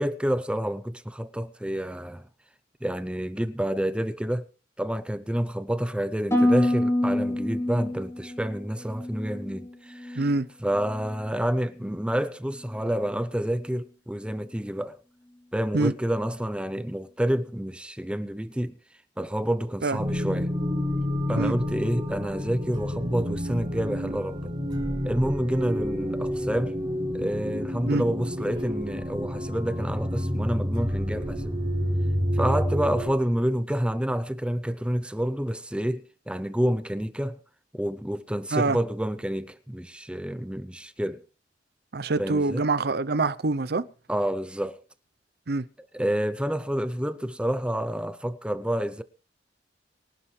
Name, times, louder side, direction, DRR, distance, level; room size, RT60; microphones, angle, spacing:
voice 1, 0.0-2.2 2.8-4.4 4.8-10.2 10.6-15.0 15.5-18.7 19.2-20.5 21.3-24.5 25.0-26.8 27.1-31.6 32.3-37.4 37.7-41.2 42.2-42.6 44.1-44.8 45.9-49.0, equal, 5° right, 0.6 m, -28 dB
Harp, 6.3-10.4 10.7-11.3 11.8-12.1, left 1 dB, 15° left, 5.3 m, -27 dB
voice 2, 10.2-10.5 15.7-15.9 19.8-20.0 21.4-21.5 27.9-28.0 38.5-38.8 41.9-43.9 45.5-45.6, right 3 dB, 60° right, 0.7 m, -25 dB
sound 1, 20.0-33.1, equal, 25° right, 3.5 m, -29 dB
23.5 x 11.5 x 3.3 m
head